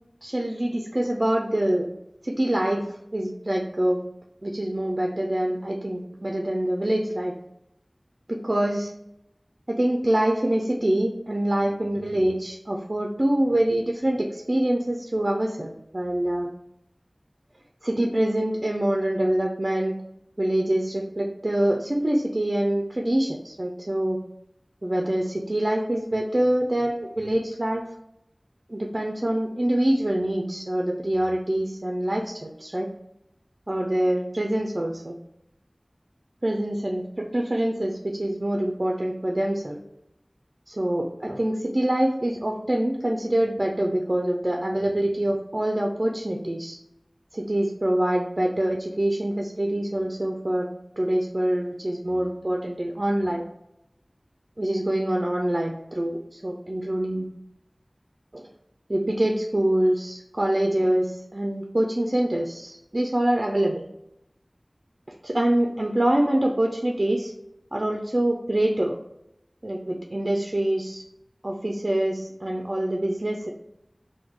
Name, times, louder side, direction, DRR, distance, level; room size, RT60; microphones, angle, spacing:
voice 1, 0.2-1.9 2.2-2.9 3.1-4.0 4.4-7.3 8.3-8.9 9.7-16.5 17.8-19.9 20.4-24.2 24.8-27.8 28.7-32.9 33.7-35.2 36.4-39.8 40.7-46.8 47.3-50.7 51.0-53.5 54.6-57.3 58.3-58.5 58.9-63.8 65.2-67.3 67.7-68.9 69.6-71.0 71.4-73.5, right 1 dB, 50° right, 1 dB, 0.4 m, -25 dB
3.5 x 2.1 x 3.0 m, 0.82 s
wide cardioid pair, 40°, 0 cm